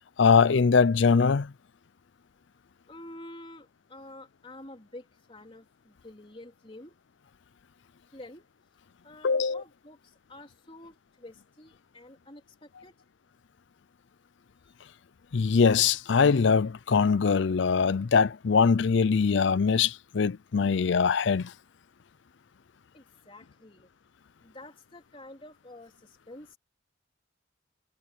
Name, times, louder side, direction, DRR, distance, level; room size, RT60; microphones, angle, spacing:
voice 1, 0.2-1.5 9.2-9.6 15.3-21.5, left 5 dB, 65° left, 0.5 m, -22 dB
voice 2, 2.9-7.0 8.1-8.5 9.0-13.0 14.7-14.8 22.9-23.9 24.4-26.6, left 1 dB, 25° left, 3.6 m, -49 dB
head